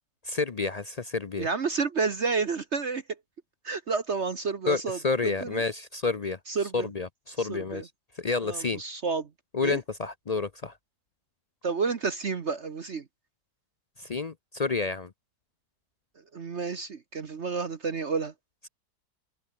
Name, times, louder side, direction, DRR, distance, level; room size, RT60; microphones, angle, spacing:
voice 1, 0.2-1.5 4.7-6.4 6.7-7.8 8.2-8.8 9.5-10.7 14.0-15.1, left 4 dB, 55° left, 0.4 m, -29 dB
voice 2, 1.4-3.0 3.6-5.6 6.5-6.9 7.4-7.8 8.4-9.3 9.6-9.8 11.6-13.0 16.3-18.3, right 5 dB, 45° right, 1.3 m, -30 dB
omnidirectional pair, 1.8 m